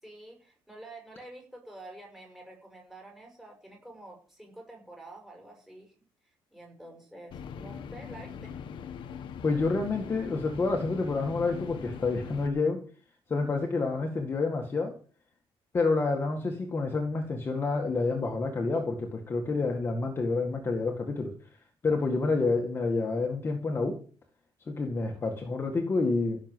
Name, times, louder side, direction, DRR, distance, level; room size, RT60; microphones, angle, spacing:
voice 1, 0.0-5.9 6.2-8.6 13.5-13.6 15.8-15.9, right 2 dB, 5° right, 1 dB, 5.8 m, -48 dB
sound 1, 7.3-12.5, left 7 dB, 55° left, 1.4 m, -41 dB
voice 2, 9.4-12.8 13.3-15.0 15.7-21.3 21.8-24.0 24.7-26.4, left 3 dB, 25° left, 3 dB, 1.9 m, -28 dB
16.5 x 6.7 x 7.8 m, 0.41 s
cardioid pair, 170°, 10 cm